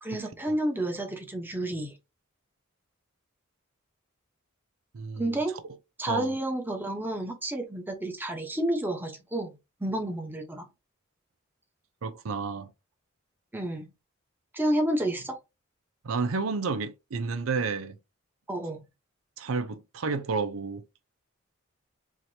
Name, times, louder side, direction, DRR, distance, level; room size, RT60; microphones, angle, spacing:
voice 1, 0.0-1.9 5.2-5.5 6.0-10.7 13.5-13.9 14.5-15.4 18.5-18.8, right 1 dB, 10° right, 1.0 m, -30 dB
voice 2, 4.9-5.4 6.1-6.4 12.0-12.7 16.0-18.0 19.4-20.8, right 4 dB, 80° right, 0.5 m, -31 dB
4.7 x 2.9 x 2.7 m
head